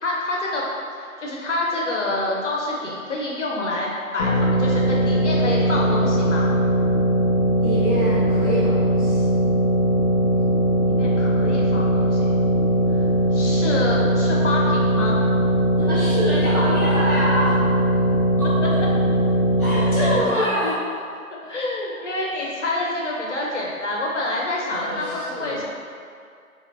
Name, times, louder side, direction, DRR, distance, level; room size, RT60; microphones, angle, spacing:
voice 1, 0.0-0.6 1.0-6.5 10.8-12.4 12.9-13.1 13.3-15.2 19.9-20.5 21.5-25.6, left 2 dB, 55° left, -3 dB, 0.6 m, -27 dB
sound 1, 4.2-20.1, equal, 30° left, 1.4 m, -20 dB
voice 2, 7.6-9.2 15.8-17.6 18.4-18.5 19.6-20.7 24.7-25.6, equal, 5° left, -21 dB, 0.8 m, -26 dB
4.1 x 2.6 x 2.6 m, 2.3 s
hypercardioid pair, 160°, 43 cm